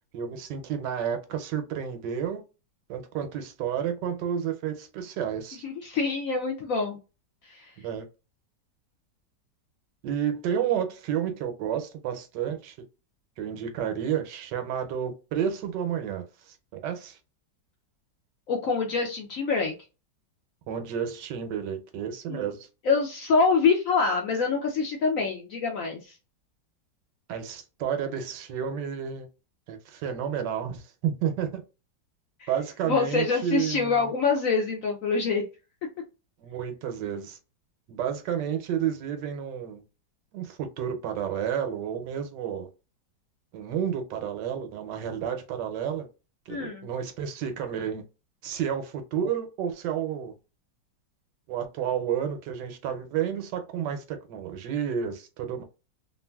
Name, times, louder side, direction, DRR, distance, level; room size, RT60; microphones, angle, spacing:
voice 1, 0.1-2.4 2.9-5.6 7.8-8.0 10.0-12.8 13.4-16.6 16.8-17.2 20.7-22.7 27.3-29.3 29.7-31.6 32.5-34.1 36.4-37.4 37.9-39.8 40.3-42.7 43.5-46.1 46.5-48.0 48.4-50.3 51.5-55.6, right 8 dB, 80° right, 1.3 m, -31 dB
voice 2, 5.6-7.0 7.5-7.7 18.5-19.7 22.3-22.5 22.8-26.1 32.4-32.5 32.9-35.4 46.5-46.9, left 4 dB, 70° left, 0.8 m, -25 dB
3.0 x 2.5 x 2.3 m
omnidirectional pair, 1.9 m